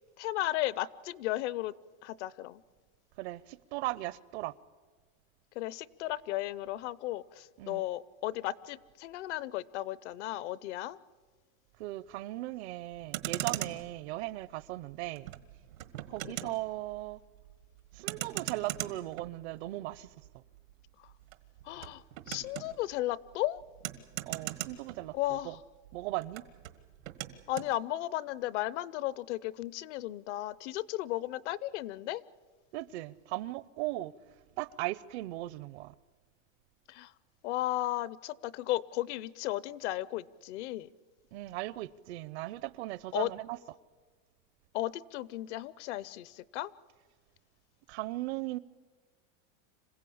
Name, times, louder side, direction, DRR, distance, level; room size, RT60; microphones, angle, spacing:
voice 1, 0.2-1.8 2.0-2.6 5.5-11.0 16.2-16.5 21.0-21.1 21.6-23.6 25.1-25.6 27.5-32.2 36.9-37.1 37.4-40.9 43.1-43.3 44.7-46.7, left 15 dB, 60° left, 0.7 m, -35 dB
voice 2, 3.2-4.5 7.6-7.8 11.8-15.3 16.1-17.2 17.9-20.1 20.3-20.4 24.3-25.6 25.9-26.4 32.7-34.1 34.6-35.9 41.3-43.8 47.9-48.6, right 17 dB, 55° right, 0.7 m, -38 dB
Motor vehicle (road), 12.9-25.6 25.8-27.7, right 14 dB, 90° right, 1.6 m, -41 dB
26.5 x 16.0 x 8.6 m
supercardioid pair, 160°, 39 cm